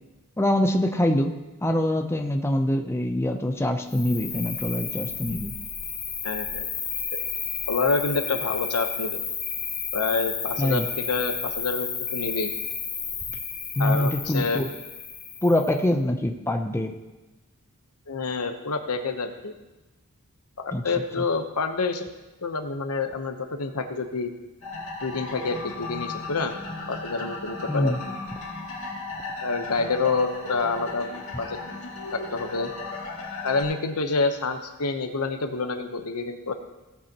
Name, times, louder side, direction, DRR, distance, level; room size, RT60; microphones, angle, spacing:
voice 1, 0.4-1.3 1.6-5.5 10.6-10.9 13.8-14.7 15.4-16.9 20.7-20.8 21.2-21.3 27.7-28.0, left 1 dB, 10° left, 4 dB, 0.6 m, -24 dB
Cricket, 3.9-15.8, left 6 dB, 35° left, 2.6 m, -32 dB
voice 2, 6.2-6.7 7.1-7.2 7.7-9.2 9.9-12.5 13.8-14.6 18.1-19.5 20.6-22.1 22.4-24.3 25.0-26.5 26.9-27.9 29.4-31.1 31.4-31.6 32.1-32.7 33.4-36.5, left 4 dB, 90° left, 6 dB, 1.0 m, -27 dB
sound 1, 24.6-33.6, left 3 dB, 65° left, 2.6 m, -36 dB
17.0 x 8.2 x 3.0 m, 1.1 s
head